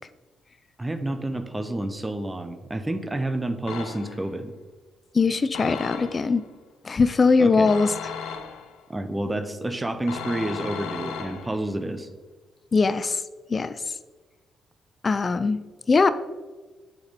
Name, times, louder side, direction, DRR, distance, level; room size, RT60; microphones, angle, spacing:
voice 1, 0.8-4.5 7.4-7.7 8.9-12.1, right 1 dB, 20° right, 9 dB, 1.0 m, -29 dB
sound 1, 3.7-4.4 5.5-6.4 7.7-8.9 10.1-11.7, left 7 dB, 85° left, 0.8 m, -36 dB
voice 2, 5.1-6.4 6.8-7.9 12.7-13.2 13.5-13.8 15.0-15.6 15.9-16.1, left 4 dB, 40° left, 13 dB, 0.5 m, -21 dB
8.6 x 6.0 x 4.2 m, 1.3 s
supercardioid pair, 60°, 0 cm